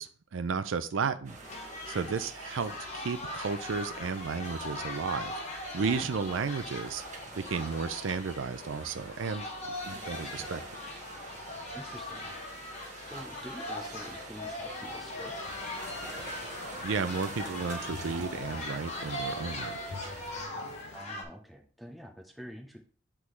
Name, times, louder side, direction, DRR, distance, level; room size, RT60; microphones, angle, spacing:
voice 1, 0.0-1.4 1.9-7.0 7.3-10.6 16.8-20.1, right 5 dB, 75° right, 12 dB, 0.5 m, -33 dB
sound 1, 1.2-20.4, right 2 dB, 35° right, 1.2 m, -47 dB
sound 2, 1.4-21.2, left 1 dB, 35° left, 1.1 m, -40 dB
voice 2, 5.8-6.1 11.7-12.3 13.1-15.4 20.9-22.8, equal, ahead, 3 dB, 0.7 m, -47 dB
sound 3, 14.7-21.0, left 3 dB, 55° left, 0.7 m, -47 dB
8.2 x 3.7 x 3.2 m, 0.42 s
head